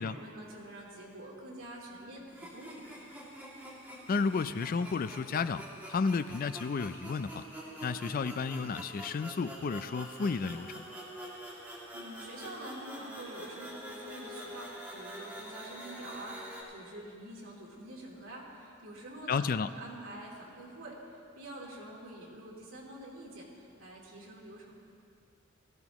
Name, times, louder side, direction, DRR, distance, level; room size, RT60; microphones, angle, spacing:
voice 1, 0.0-2.8 11.9-24.7, right 1 dB, 85° right, -5 dB, 3.0 m, -46 dB
sound 1, 2.3-16.6, equal, 10° right, 2.3 m, -46 dB
voice 2, 4.1-5.6 5.9-7.4 7.8-10.9 19.3-19.7, left 5 dB, 45° left, 13 dB, 0.4 m, -32 dB
18.0 x 15.0 x 3.0 m, 2.4 s
head